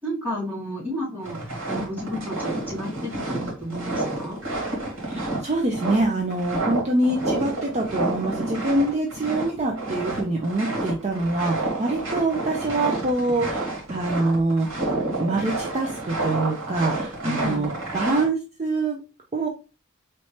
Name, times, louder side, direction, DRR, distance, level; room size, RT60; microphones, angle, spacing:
voice 1, 0.0-4.4 17.2-17.7, equal, 10° right, -6 dB, 2.5 m, -32 dB
sound 1, 1.2-18.2, right 2 dB, 70° right, 2.3 m, -29 dB
voice 2, 5.0-14.9 15.2-19.0 19.3-19.5, right 2 dB, 35° right, 0 dB, 0.6 m, -25 dB
4.3 x 3.1 x 3.2 m, 0.32 s
head